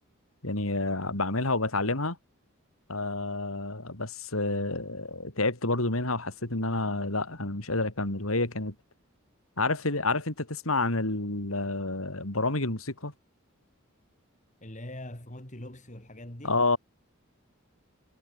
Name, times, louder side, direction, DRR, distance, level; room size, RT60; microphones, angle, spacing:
voice 1, 0.4-2.2 2.9-8.7 9.6-13.1 16.4-16.8, left 2 dB, 90° left, 4.6 m, -29 dB
voice 2, 14.6-16.6, left 1 dB, 35° left, 3.9 m, -42 dB
head